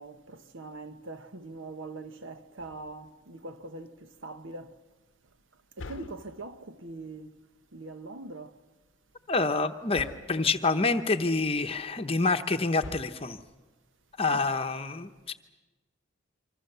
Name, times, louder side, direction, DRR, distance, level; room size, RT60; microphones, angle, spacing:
voice 1, 0.0-4.8 5.8-7.4 7.7-8.5 14.2-14.5, right 2 dB, 70° right, 1.1 m, -42 dB
sound 1, 2.6-3.2 5.8-6.7 9.9-10.6 12.8-13.6, left 2 dB, 70° left, 0.8 m, -45 dB
voice 2, 9.3-13.4 14.2-15.3, left 3 dB, 30° left, 0.9 m, -27 dB
27.0 x 25.0 x 6.8 m
head